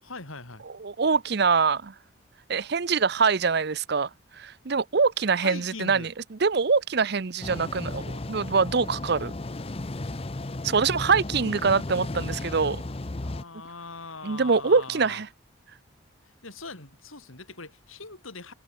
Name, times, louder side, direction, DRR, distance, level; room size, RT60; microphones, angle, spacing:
voice 1, 0.0-0.6 5.4-6.1 13.2-15.2 16.2-18.5, left 3 dB, 85° left, 5.1 m, -41 dB
voice 2, 0.8-1.9 2.5-6.1 6.4-9.3 10.6-12.8 14.2-15.3, right 5 dB, 50° right, 0.6 m, -24 dB
sound 1, 7.4-13.4, left 2 dB, 30° left, 0.7 m, -34 dB
head